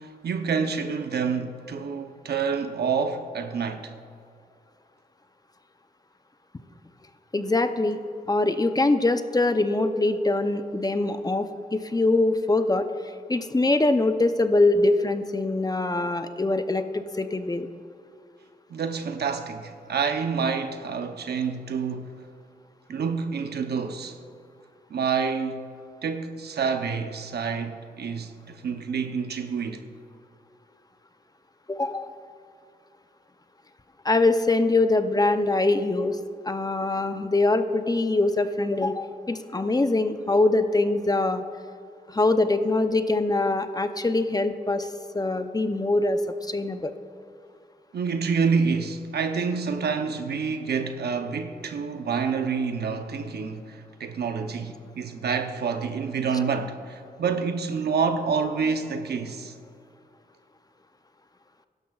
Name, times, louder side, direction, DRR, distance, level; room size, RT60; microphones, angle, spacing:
voice 1, 0.0-3.9 18.7-22.1 22.9-24.2 24.9-25.6 26.0-29.8 47.9-59.5, right 5 dB, 80° right, 0.8 m, -28 dB
voice 2, 7.3-8.0 8.3-12.9 13.3-17.7 31.7-32.1 34.0-36.2 36.4-41.4 42.1-46.9, left 2 dB, 25° left, 0.7 m, -23 dB
16.0 x 12.0 x 2.4 m
cardioid pair, 60°, 17 cm